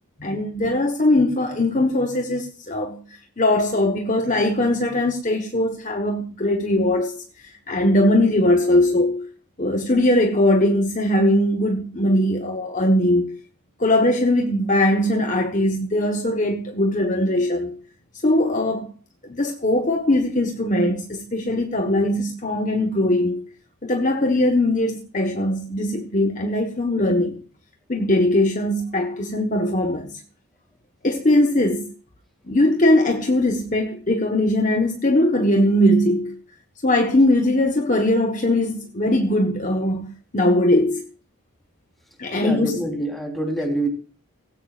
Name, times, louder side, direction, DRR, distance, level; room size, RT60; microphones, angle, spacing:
voice 1, 0.2-3.0 3.4-7.1 7.7-9.3 9.6-13.4 13.8-17.8 18.2-18.9 19.2-23.4 23.8-27.3 27.9-30.1 31.0-31.9 32.5-36.3 36.8-40.1 40.3-41.0 42.2-42.8, left 1 dB, 35° left, 1.2 m, -20 dB
voice 2, 42.3-43.9, right 1 dB, ahead, 3.8 m, -26 dB
18.0 x 16.0 x 2.5 m
head